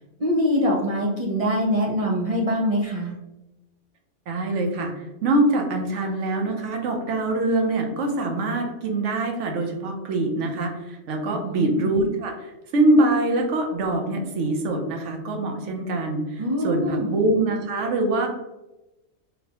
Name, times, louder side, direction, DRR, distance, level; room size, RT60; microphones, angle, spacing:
voice 1, 0.2-3.1 11.3-11.9 16.4-17.1, equal, 60° right, -3 dB, 0.4 m, -24 dB
voice 2, 4.3-18.3, right 2 dB, 75° right, 3 dB, 1.0 m, -24 dB
4.0 x 2.1 x 2.8 m, 0.97 s
omnidirectional pair, 1.3 m